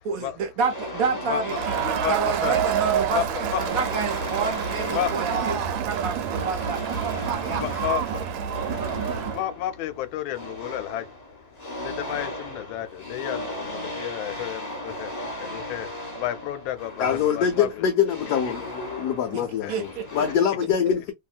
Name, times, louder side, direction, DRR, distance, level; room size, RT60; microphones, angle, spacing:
voice 1, 0.0-1.5 2.1-3.2 3.6-7.7 19.3-19.4 19.7-20.1, right 5 dB, 60° right, 0.9 m, -29 dB
sound 1, 0.6-20.4, left 1 dB, 25° left, 1.0 m, -37 dB
voice 2, 1.3-2.6 3.1-3.9 4.9-5.2 7.4-17.9 18.3-18.5 18.9-19.1 19.6-19.8, left 12 dB, 90° left, 1.4 m, -33 dB
Crowd, 1.5-9.4, right 8 dB, 80° right, 1.4 m, -27 dB
voice 3, 17.0-21.1, left 8 dB, 75° left, 0.9 m, -24 dB
2.8 x 2.7 x 2.4 m
omnidirectional pair, 2.1 m